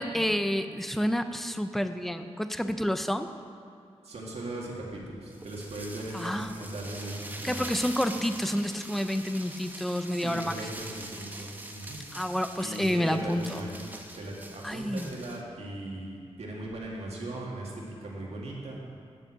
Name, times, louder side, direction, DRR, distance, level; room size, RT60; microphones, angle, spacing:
voice 1, 0.0-3.3 6.1-6.5 7.4-10.6 12.1-13.6 14.6-15.1, equal, ahead, 9 dB, 0.4 m, -29 dB
voice 2, 4.0-7.7 10.1-12.0 12.6-13.8 14.2-18.8, right 1 dB, 75° right, -3 dB, 2.1 m, -38 dB
sound 1, 5.3-15.4, right 1 dB, 15° right, 0.8 m, -44 dB
9.4 x 7.2 x 7.3 m, 2.6 s
wide cardioid pair, 150°, 11 cm